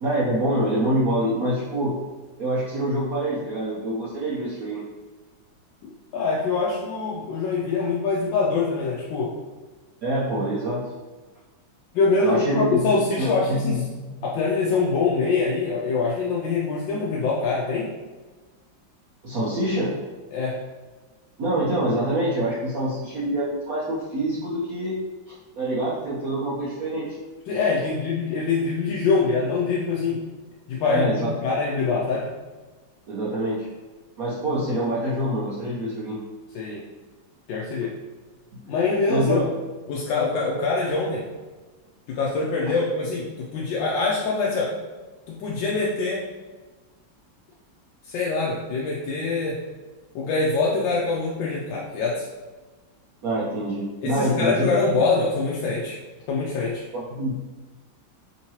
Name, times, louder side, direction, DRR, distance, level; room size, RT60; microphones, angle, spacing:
voice 1, 0.0-2.0 2.4-4.8 10.0-10.8 12.2-12.8 13.2-14.1 19.2-20.0 21.4-25.0 25.3-27.2 30.9-31.4 33.1-33.7 34.2-36.2 39.1-39.4 42.7-42.8 53.2-54.7 56.9-57.3, right 1 dB, 60° right, -8 dB, 1.0 m, -25 dB
voice 2, 5.8-9.3 11.9-13.8 14.2-17.9 20.3-20.6 27.5-30.2 30.7-32.3 36.5-36.8 37.5-37.9 38.7-39.5 39.9-41.3 42.1-44.7 45.3-46.2 48.0-49.6 50.1-52.3 54.0-56.0 56.3-56.8, left 4 dB, 75° left, -4 dB, 1.2 m, -24 dB
3.6 x 2.9 x 2.8 m, 1.3 s
omnidirectional pair, 2.1 m